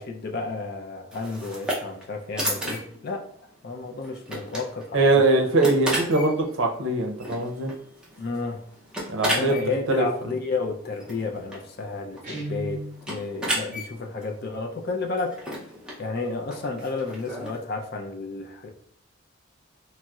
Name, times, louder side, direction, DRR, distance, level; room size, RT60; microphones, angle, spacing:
voice 1, 0.0-3.2 3.6-5.2 8.2-8.6 9.3-15.4 16.0-18.7, left 3 dB, 50° left, 3 dB, 0.4 m, -31 dB
sound 1, 1.1-17.6, equal, 5° right, 0.5 m, -35 dB
voice 2, 4.9-7.7 9.1-9.5 9.9-10.1, right 2 dB, 70° right, 2 dB, 0.6 m, -22 dB
Guitar, 12.2-13.0, right 1 dB, 40° right, 0.7 m, -33 dB
4.0 x 2.0 x 2.3 m, 0.64 s
head